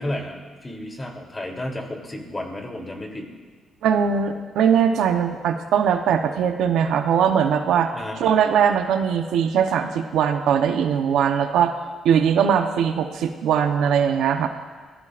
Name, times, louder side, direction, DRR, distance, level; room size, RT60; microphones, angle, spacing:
voice 1, 0.0-3.3 7.9-8.4, left 1 dB, 20° left, 1 dB, 3.2 m, -32 dB
voice 2, 3.8-7.9 8.2-11.7 12.0-14.5, right 8 dB, 80° right, 6 dB, 0.9 m, -20 dB
24.5 x 16.5 x 2.5 m, 1.5 s
cardioid pair, 90°, 0 cm